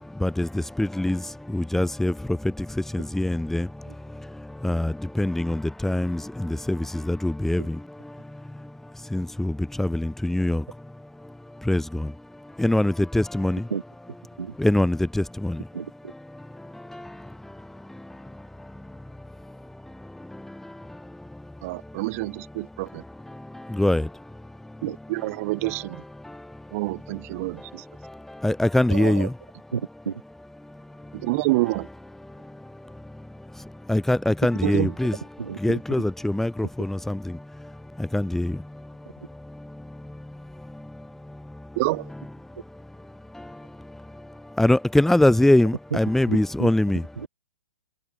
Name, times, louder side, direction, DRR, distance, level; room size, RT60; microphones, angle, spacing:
voice 1, 0.2-1.2 1.5-2.1 2.9-3.7 4.6-7.8 9.1-10.6 11.7-12.1 12.6-13.6 14.6-15.6 23.7-24.1 28.4-29.3 33.9-35.2 35.6-37.3 38.0-38.6 44.6-47.0, left 1 dB, ahead, 3.2 m, -23 dB
voice 2, 15.7-16.1 24.9-25.0 29.7-30.2 35.4-35.8 46.3-46.7, right 6 dB, 70° right, 2.2 m, -31 dB
voice 3, 21.6-23.0 24.8-26.0 26.7-27.8 29.0-29.1 31.2-31.9 34.6-34.9 41.8-42.0, right 22 dB, 40° right, 1.0 m, -27 dB
figure-of-eight pair, 120°, 13 cm